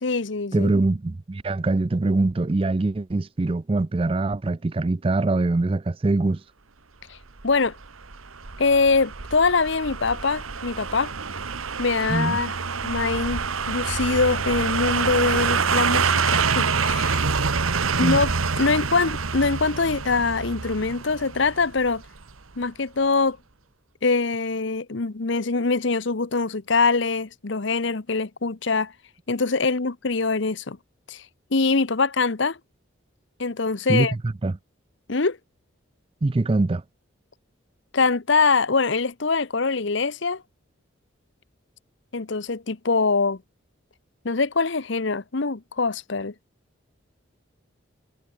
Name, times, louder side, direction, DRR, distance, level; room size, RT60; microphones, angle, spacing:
voice 1, 0.0-0.7 7.1-7.2 7.4-7.7 8.6-11.1 11.8-12.5 12.8-17.2 18.0-18.3 18.6-22.0 22.6-23.4 24.0-28.9 29.3-30.8 31.1-31.2 31.5-32.6 33.4-34.1 35.1-35.4 37.9-40.4 42.1-43.4 44.2-46.3, left 4 dB, 65° left, 0.9 m, -23 dB
voice 2, 0.5-6.4 12.1-12.4 17.9-18.2 33.9-34.6 36.2-36.8, right 2 dB, 25° right, 0.4 m, -23 dB
sound 1, 7.4-22.3 22.6-22.7, right 5 dB, 90° right, 1.5 m, -26 dB
head